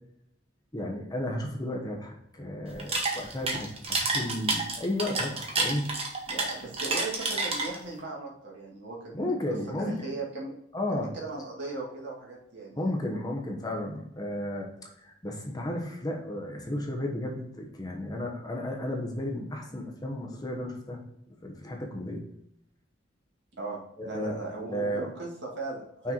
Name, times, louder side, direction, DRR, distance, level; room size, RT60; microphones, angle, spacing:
voice 1, 0.7-6.0 9.1-10.1 10.7-11.1 12.8-21.0 21.4-22.2 24.0-24.3 24.6-25.1 26.0-26.1, left 1 dB, 20° left, 1 dB, 1.0 m, -33 dB
sound 1, 2.7-8.0, right 3 dB, 30° right, 1.2 m, -29 dB
voice 2, 6.3-10.5 10.9-12.9 23.6-23.8 24.0-26.1, right 3 dB, 60° right, -2 dB, 2.2 m, -38 dB
6.1 x 4.5 x 4.4 m, 0.78 s
head